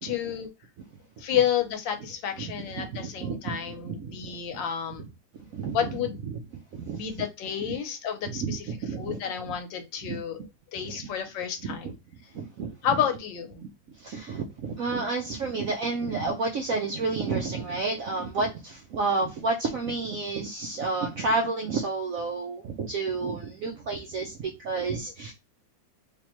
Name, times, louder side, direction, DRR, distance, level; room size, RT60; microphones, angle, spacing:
voice 1, 0.0-0.5 1.2-5.1 5.7-6.2 6.9-8.7 9.0-10.4 10.7-11.9 12.8-13.6, left 9 dB, 75° left, 1.4 m, -30 dB
voice 2, 2.4-4.6 5.5-5.9 6.2-6.4 6.7-7.2 7.7-7.8 8.2-9.2 9.5-9.6 10.0-10.2 10.7-11.1 11.6-11.9 12.3-13.0 14.0-25.3, right 3 dB, 70° right, 0.7 m, -31 dB
3.4 x 2.9 x 2.9 m
omnidirectional pair, 2.1 m